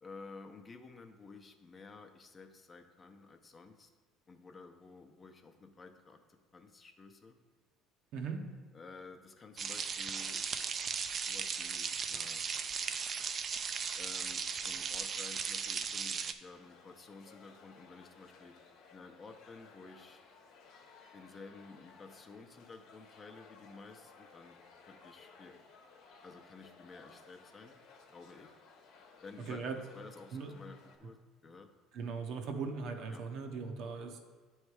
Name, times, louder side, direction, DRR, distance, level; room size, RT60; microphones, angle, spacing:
voice 1, 0.0-3.9 4.3-7.4 8.7-10.4 11.3-12.5 14.0-18.5 18.9-20.2 21.1-24.6 24.9-25.6 26.2-27.7 28.1-28.5 29.2-31.2 31.4-31.7 33.1-33.2, left 4 dB, 30° left, 5 dB, 0.6 m, -53 dB
voice 2, 8.1-8.4 29.5-29.8 30.3-30.5 31.0-31.1 31.9-34.2, right 5 dB, 65° right, 4 dB, 0.8 m, -39 dB
sound 1, 9.6-16.3, right 6 dB, 40° right, 0.4 m, -37 dB
sound 2, 16.5-31.0, left 4 dB, 65° left, 0.9 m, -59 dB
9.4 x 3.2 x 4.8 m, 1.4 s
supercardioid pair, 105°, 0 cm